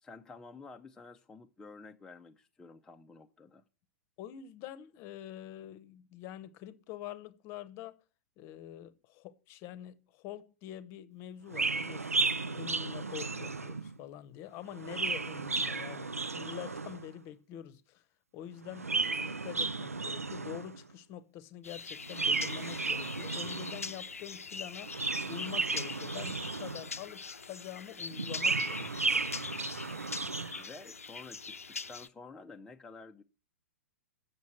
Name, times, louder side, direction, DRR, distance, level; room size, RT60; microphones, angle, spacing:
voice 1, 0.0-3.6 30.6-33.2, left 4 dB, 10° left, 0.6 m, -51 dB
voice 2, 4.2-8.0 8.4-18.0 18.3-25.0 25.2-29.4, left 11 dB, 35° left, 0.9 m, -46 dB
Chirp tweet, 11.5-14.0 14.7-17.1 18.6-20.8 22.1-24.0 24.8-27.0 28.1-30.6, right 3 dB, 80° right, 0.6 m, -34 dB
sound 1, 21.6-32.1, left 5 dB, 75° left, 0.6 m, -43 dB
8.4 x 6.7 x 7.8 m
figure-of-eight pair, 105°, 8 cm